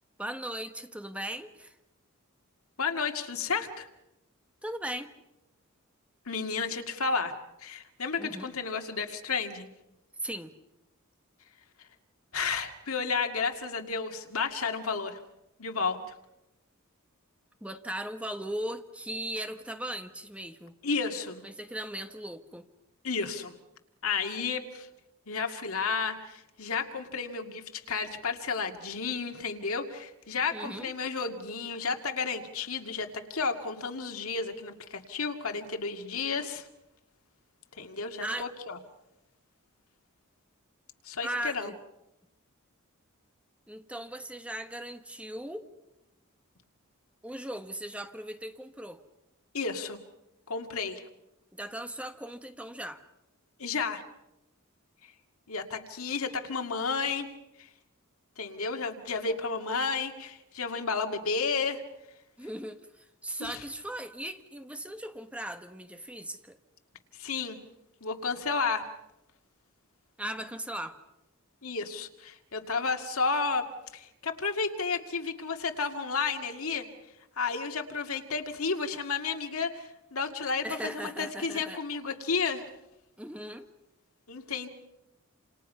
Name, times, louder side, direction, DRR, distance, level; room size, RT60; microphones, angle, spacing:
voice 1, 0.2-1.8 4.6-5.1 8.2-8.5 10.2-10.5 17.6-20.8 21.4-22.7 30.5-30.9 38.2-38.5 41.2-41.8 43.7-45.7 47.2-49.0 51.5-53.0 62.4-66.6 70.2-71.0 80.6-81.8 83.2-83.7, right 1 dB, 5° right, 7 dB, 1.3 m, -38 dB
voice 2, 2.8-3.9 6.3-7.3 7.6-9.7 12.3-15.2 15.6-16.1 20.8-21.4 23.0-23.6 24.0-24.9 25.3-36.7 37.8-38.8 41.0-41.7 49.5-50.0 50.5-51.0 53.6-54.0 55.0-55.1 55.5-57.3 57.6-57.7 58.4-61.8 63.4-63.6 67.1-67.6 68.0-68.9 71.6-73.7 73.9-76.9 77.4-82.7 84.3-84.7, left 4 dB, 75° left, 5 dB, 2.2 m, -32 dB
28.0 x 28.0 x 5.6 m, 0.93 s
head